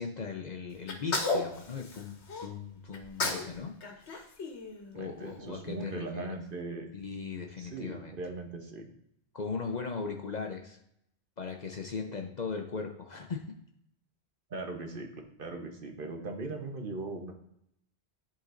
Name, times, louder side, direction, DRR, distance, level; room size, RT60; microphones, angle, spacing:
voice 1, 0.0-4.2 4.9-6.4 6.9-8.1 9.3-10.8 11.4-13.5, left 5 dB, 50° left, 3 dB, 0.6 m, -38 dB
Sneeze, 0.9-2.5 2.9-3.5 3.8-5.3, left 3 dB, 80° left, 1.3 m, -34 dB
voice 2, 4.9-6.9 7.6-8.9 14.5-15.1 15.4-17.3, right 3 dB, 55° right, 3 dB, 1.0 m, -39 dB
11.0 x 4.0 x 2.5 m, 0.76 s
omnidirectional pair, 1.1 m